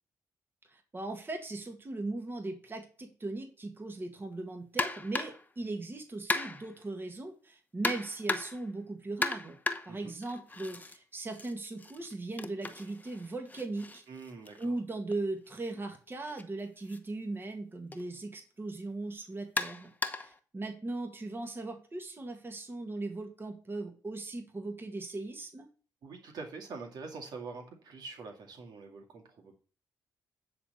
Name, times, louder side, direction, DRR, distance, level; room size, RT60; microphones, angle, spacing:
voice 1, 0.7-9.6 9.8-14.0 14.6-25.7, right 2 dB, 30° right, 4 dB, 2.0 m, -38 dB
sound 1, 4.8-5.5 6.3-6.8 7.8-8.7 9.2-11.0 11.3-15.2 16.2-16.4 16.9-17.0 17.9-18.0 19.6-20.4, left 3 dB, 20° left, 1.1 m, -36 dB
voice 2, 14.1-14.7 26.0-29.5, right 4 dB, 70° right, 3 dB, 2.2 m, -45 dB
10.0 x 4.2 x 6.6 m, 0.39 s
supercardioid pair, 65°, 7 cm